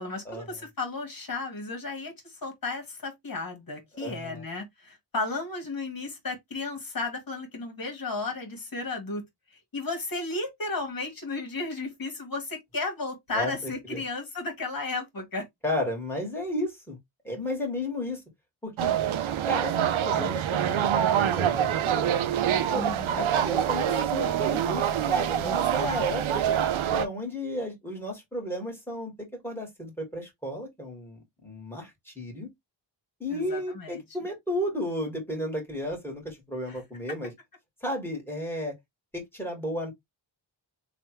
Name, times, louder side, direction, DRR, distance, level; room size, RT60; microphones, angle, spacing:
voice 1, 0.0-9.2 9.5-15.5 22.7-23.3 25.4-26.0 33.3-34.0 36.7-36.8, left 3 dB, 45° left, 1.6 m, -34 dB
voice 2, 3.9-4.4 13.3-14.0 15.6-17.0 17.2-18.2 18.6-18.9 19.5-22.1 22.7-26.6 26.9-32.5 33.2-37.3 37.8-38.7 39.1-39.9, left 1 dB, 5° left, 2.0 m, -33 dB
sound 1, 18.8-27.1, right 10 dB, 75° right, 0.6 m, -25 dB
3.3 x 2.5 x 3.1 m
cardioid pair, 80°, 48 cm